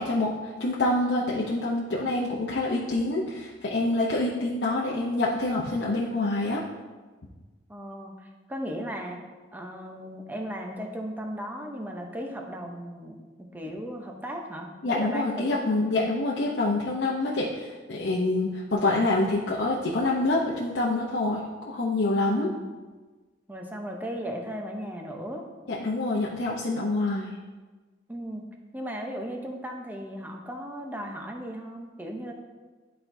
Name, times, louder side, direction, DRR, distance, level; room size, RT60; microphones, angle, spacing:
voice 1, 0.0-6.6 14.8-22.5 25.7-27.3, left 2 dB, 70° left, -4 dB, 0.7 m, -26 dB
voice 2, 7.7-9.2 9.5-15.6 22.3-22.6 23.5-25.4 28.1-28.4 28.7-32.3, equal, 10° right, 1 dB, 0.8 m, -36 dB
11.0 x 4.4 x 2.7 m, 1.3 s
head